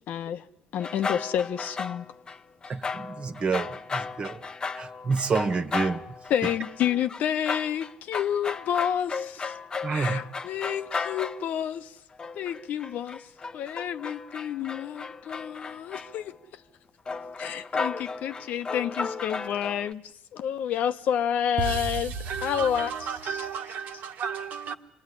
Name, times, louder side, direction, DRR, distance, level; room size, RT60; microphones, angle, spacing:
voice 1, 0.1-0.4 0.7-2.0 6.3-9.5 9.9-12.0 12.3-13.3 13.5-16.6 17.4-22.1 22.4-23.5, left 9 dB, 65° left, 1.1 m, -29 dB
sound 1, 0.8-2.4 2.6-11.6 12.2-16.4 17.1-19.9, left 4 dB, 30° left, 0.9 m, -35 dB
voice 2, 2.7-4.4 4.7-6.0 9.8-10.2, right 4 dB, 40° right, 1.7 m, -28 dB
voice 3, 21.6-24.7, right 6 dB, 65° right, 1.7 m, -33 dB
27.0 x 19.5 x 10.0 m
cardioid pair, 100°, 3 cm